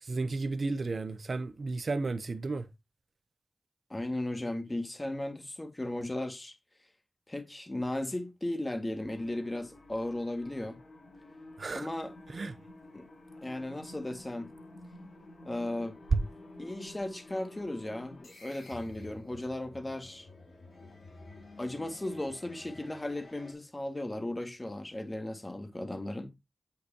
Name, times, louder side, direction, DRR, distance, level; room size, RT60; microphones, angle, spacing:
voice 1, 0.0-2.7 11.6-11.9 12.3-12.5 16.1-16.2, right 3 dB, 65° right, 0.8 m, -32 dB
voice 2, 3.9-6.5 7.3-10.8 11.7-12.1 12.9-13.1 13.4-14.5 15.4-16.0 16.6-20.3 21.6-26.4, left 1 dB, 25° left, 1.9 m, -36 dB
sound 1, 9.0-23.5, left 2 dB, 85° left, 3.0 m, -51 dB
7.9 x 6.6 x 2.8 m
cardioid pair, 50°, 0 cm